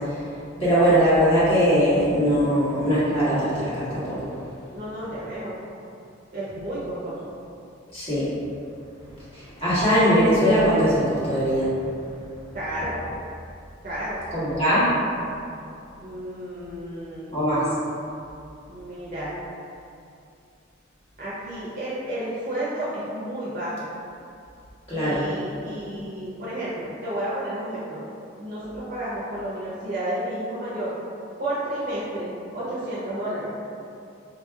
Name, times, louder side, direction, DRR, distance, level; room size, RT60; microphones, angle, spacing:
voice 1, 0.6-4.2 7.9-8.2 9.3-11.7 14.3-14.8 17.3-17.7 24.9-25.2, equal, 30° left, -11 dB, 1.3 m, -20 dB
voice 2, 4.7-5.5 6.3-7.2 12.5-13.0 13.8-14.2 16.0-17.4 18.7-19.3 21.2-23.9 24.9-28.0 28.4-30.9 31.4-33.5, right 1 dB, 45° right, -9 dB, 0.7 m, -31 dB
4.3 x 2.8 x 2.3 m, 2.6 s
head